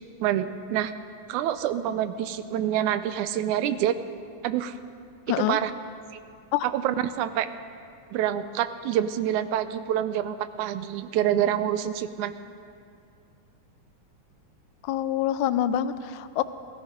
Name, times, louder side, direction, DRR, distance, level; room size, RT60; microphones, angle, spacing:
voice 1, 0.2-0.9 1.3-4.0 4.4-4.8 5.5-5.7 6.1-6.2 6.6-7.5 8.1-12.3, right 11 dB, 80° right, 12 dB, 2.0 m, -26 dB
voice 2, 5.3-5.6 6.5-6.7 14.8-16.4, left 11 dB, 85° left, 12 dB, 2.0 m, -26 dB
17.0 x 14.5 x 5.1 m, 2.3 s
omnidirectional pair, 3.5 m